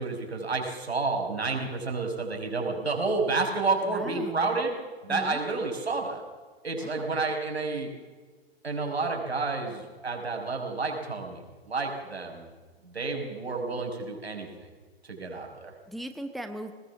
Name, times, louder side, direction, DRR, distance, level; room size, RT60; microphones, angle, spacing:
voice 1, 0.0-4.8 5.0-6.2 6.6-7.9 8.6-11.4 11.7-12.5 12.8-14.7 15.1-15.7, right 3 dB, 75° right, 2 dB, 5.7 m, -30 dB
voice 2, 3.8-4.6 5.1-5.4 6.8-7.2 15.9-16.7, right 1 dB, ahead, 7 dB, 0.9 m, -39 dB
22.5 x 20.0 x 7.2 m, 1.4 s
figure-of-eight pair, 115°, 32 cm